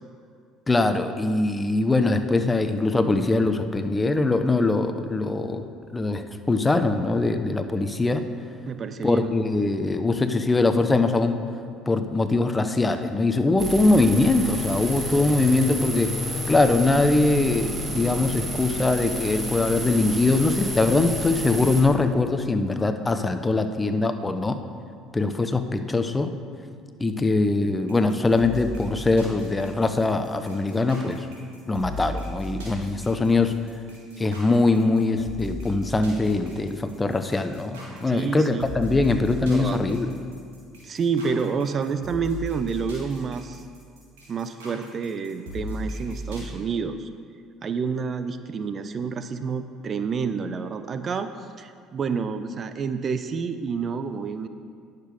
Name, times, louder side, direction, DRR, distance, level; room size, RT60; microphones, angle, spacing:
voice 1, 0.7-5.6 5.9-8.3 9.0-11.4 11.9-24.6 25.1-26.3 27.0-31.3 31.7-33.5 34.2-40.1, left 2 dB, 20° left, 8 dB, 0.7 m, -22 dB
voice 2, 8.7-9.3 38.1-38.8 39.5-39.8 40.8-43.6 44.3-47.1 47.6-51.3 51.6-54.5, right 5 dB, 40° right, 10 dB, 0.5 m, -29 dB
sound 1, 13.6-21.8, right 1 dB, 20° right, 2.1 m, -31 dB
sound 2, 27.9-46.4, equal, 80° right, 2.8 m, -37 dB
10.0 x 6.6 x 5.2 m, 2.2 s
hypercardioid pair, 70°, 0 cm